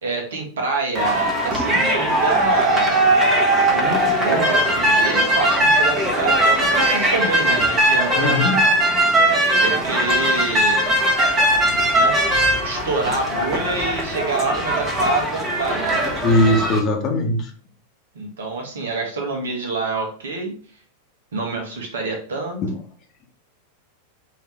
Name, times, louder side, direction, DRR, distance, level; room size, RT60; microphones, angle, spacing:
voice 1, 0.0-3.0 3.7-8.4 9.6-10.8 11.7-16.0 18.1-20.6 21.3-22.6, right 3 dB, 65° right, 2 dB, 1.2 m, -26 dB
sound 1, 1.0-16.8, right 1 dB, 20° right, 1.2 m, -19 dB
voice 2, 8.2-8.6 16.2-17.5 22.6-22.7, left 1 dB, 35° left, 3 dB, 1.0 m, -19 dB
4.7 x 2.9 x 3.5 m, 0.43 s
figure-of-eight pair, 90°, 0 cm